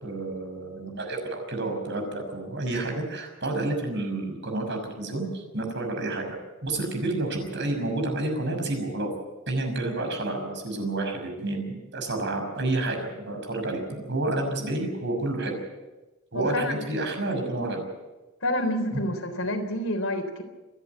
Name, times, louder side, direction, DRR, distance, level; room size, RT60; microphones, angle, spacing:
voice 1, 0.0-6.4 6.6-9.1 9.5-15.6 16.3-17.8 18.9-19.0, right 2 dB, 55° right, 3 dB, 6.0 m, -29 dB
voice 2, 16.3-16.8 18.4-20.4, left 1 dB, 75° left, 5 dB, 3.7 m, -28 dB
27.5 x 10.5 x 9.3 m, 1.1 s
head